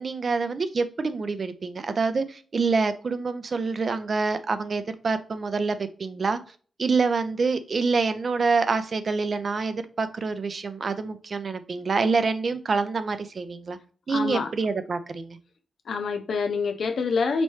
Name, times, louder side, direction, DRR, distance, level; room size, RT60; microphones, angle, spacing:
voice 1, 0.0-6.4 6.8-13.8 14.1-15.4, right 4 dB, 40° right, 0.4 m, -26 dB
voice 2, 14.1-14.5 15.9-17.4, left 4 dB, 65° left, 0.6 m, -26 dB
5.5 x 3.0 x 3.1 m
wide cardioid pair, 155°, 0 cm